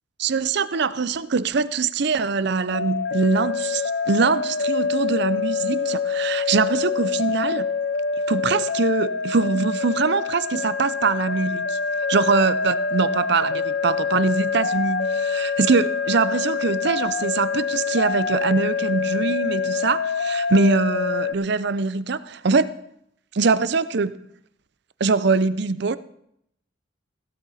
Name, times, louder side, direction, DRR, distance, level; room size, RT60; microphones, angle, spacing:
voice 1, 0.2-7.7 8.3-11.8 12.1-22.7 23.3-24.2 25.0-26.0, right 4 dB, 55° right, 0.6 m, -23 dB
sound 1, 2.7-21.3, left 5 dB, 55° left, 0.6 m, -26 dB
16.0 x 12.0 x 4.2 m
head